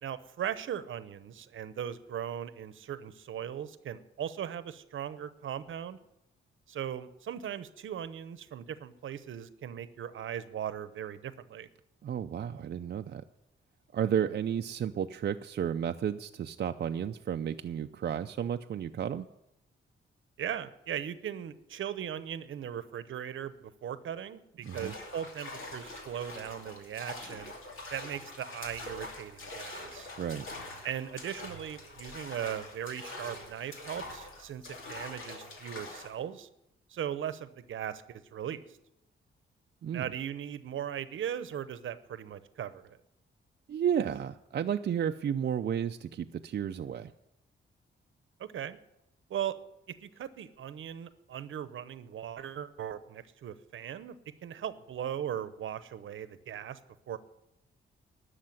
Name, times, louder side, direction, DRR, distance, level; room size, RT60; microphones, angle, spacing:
voice 1, 0.0-6.0 6.7-11.7 20.4-27.5 27.9-30.1 30.8-36.5 36.9-38.6 39.9-42.8 48.4-48.8 49.3-49.5 50.0-54.2 54.4-56.8 57.1-57.2, right 9 dB, 75° right, 14 dB, 0.8 m, -38 dB
voice 2, 12.0-13.2 13.9-19.3 24.6-24.9 30.2-30.4 39.8-40.0 43.7-47.1, right 9 dB, 55° right, 6 dB, 0.5 m, -32 dB
sound 1, 24.6-36.2, left 2 dB, 75° left, 2.7 m, -44 dB
12.0 x 6.6 x 9.4 m, 0.85 s
cardioid pair, 90°, 21 cm